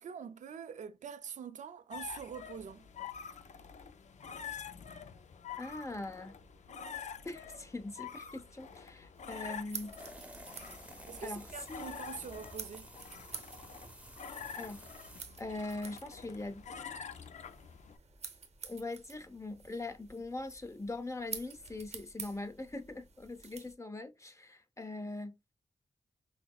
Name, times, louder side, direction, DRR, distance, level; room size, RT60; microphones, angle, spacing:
voice 1, 0.0-2.9 11.1-12.9, right 7 dB, 75° right, 0.4 m, -44 dB
sound 1, 1.9-18.0, left 7 dB, 70° left, 0.5 m, -47 dB
voice 2, 5.6-6.3 7.2-9.9 11.2-11.4 11.7-11.8 14.5-14.8 15.4-16.6 18.6-25.3, left 2 dB, 25° left, 0.7 m, -41 dB
sound 2, 9.2-23.7, right 5 dB, 60° right, 0.8 m, -50 dB
sound 3, 10.0-15.2, right 1 dB, 10° right, 0.7 m, -53 dB
5.7 x 2.0 x 2.3 m
cardioid pair, 55°, 13 cm